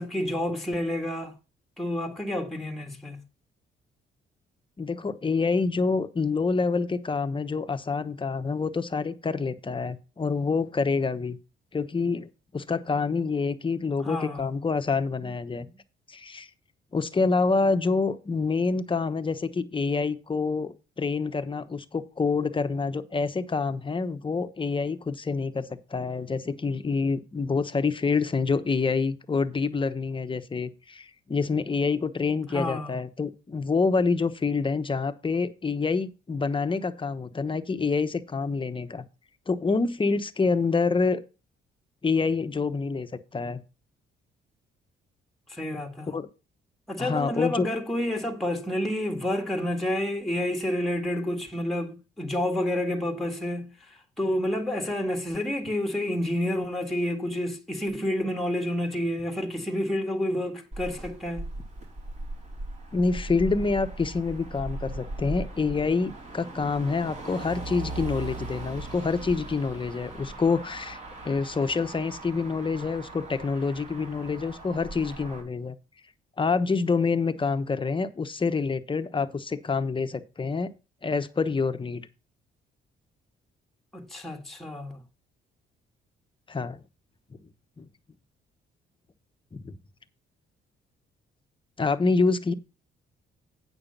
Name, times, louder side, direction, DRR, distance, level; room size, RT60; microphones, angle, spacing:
voice 1, 0.0-1.4 1.8-3.2 14.0-14.5 32.5-33.0 45.5-46.1 46.9-61.5 83.9-85.0, left 1 dB, ahead, 1.7 m, -29 dB
voice 2, 4.8-11.4 11.7-12.3 12.5-15.7 16.1-16.5 16.9-39.0 39.5-41.2 42.0-43.6 46.1-46.3 47.0-47.7 62.9-71.0 71.2-75.7 76.4-80.7 81.0-82.1 86.5-86.8 87.8-87.9 89.5-89.7 91.8-92.5, left 4 dB, 25° left, 1.1 m, -27 dB
Motor vehicle (road), 60.7-75.4, right 2 dB, 35° right, 4.1 m, -39 dB
8.8 x 6.3 x 5.4 m
cardioid pair, 90°, 20 cm